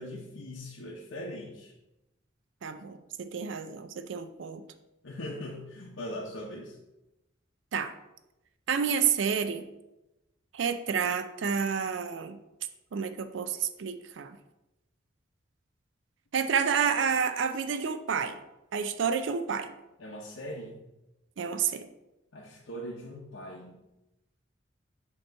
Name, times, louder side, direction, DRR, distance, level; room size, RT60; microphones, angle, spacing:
voice 1, 0.0-1.7 5.0-6.8 20.0-20.8 22.3-23.8, equal, 90° left, -3 dB, 0.8 m, -40 dB
voice 2, 2.6-4.6 7.7-7.9 8.7-9.7 10.5-12.4 12.9-14.4 16.3-18.4 18.7-19.7 21.4-21.9, right 6 dB, 75° right, 9 dB, 0.4 m, -29 dB
7.7 x 3.0 x 4.5 m, 0.95 s
head